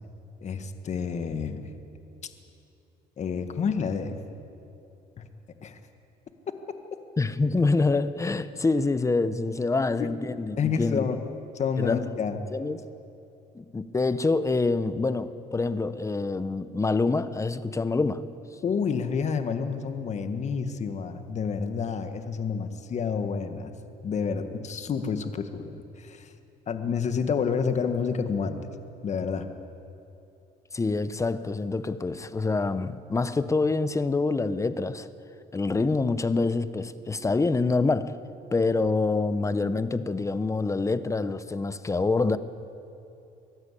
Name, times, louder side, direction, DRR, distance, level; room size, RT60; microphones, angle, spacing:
voice 1, 0.4-1.7 3.2-4.2 5.6-5.8 10.0-10.1 10.6-11.2 11.5-12.4 18.6-23.7 24.0-26.3 26.7-28.7 29.0-29.5, left 6 dB, 45° left, 1.7 m, -29 dB
voice 2, 7.2-11.1 11.8-12.2 12.5-12.9 13.5-18.2 30.7-35.1 35.5-38.2 38.5-42.4, left 3 dB, 20° left, 0.9 m, -26 dB
23.5 x 15.5 x 8.4 m
cardioid pair, 110°, 17 cm